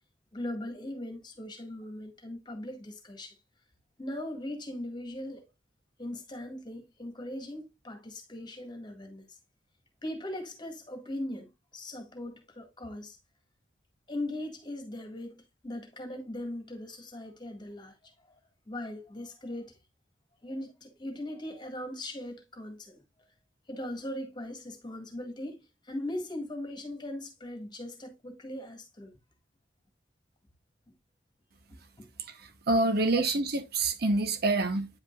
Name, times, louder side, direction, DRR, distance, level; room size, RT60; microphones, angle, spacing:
voice 1, 0.3-3.4 4.0-5.4 6.0-9.2 10.0-13.2 14.1-18.4 18.7-19.8 20.4-23.0 23.7-29.1 32.0-32.1, left 1 dB, 25° left, 1.7 m, -39 dB
voice 2, 32.7-34.9, right 2 dB, 55° right, 0.9 m, -26 dB
9.6 x 5.2 x 2.4 m
head